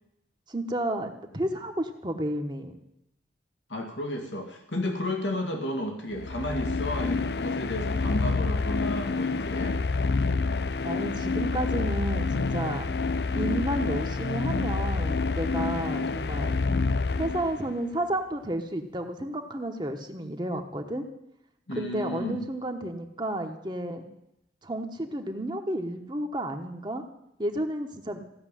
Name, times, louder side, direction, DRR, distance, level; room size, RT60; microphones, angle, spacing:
voice 1, 0.5-2.8 10.8-12.9 13.3-16.6 17.2-21.1 21.7-24.0 24.6-27.0 27.4-28.2, right 1 dB, 25° right, 4 dB, 1.1 m, -32 dB
voice 2, 3.7-9.8 21.7-22.5, left 1 dB, 90° left, 3 dB, 2.1 m, -32 dB
sound 1, 6.1-17.8, left 3 dB, 65° left, 0.5 m, -28 dB
16.0 x 6.8 x 9.9 m, 0.83 s
head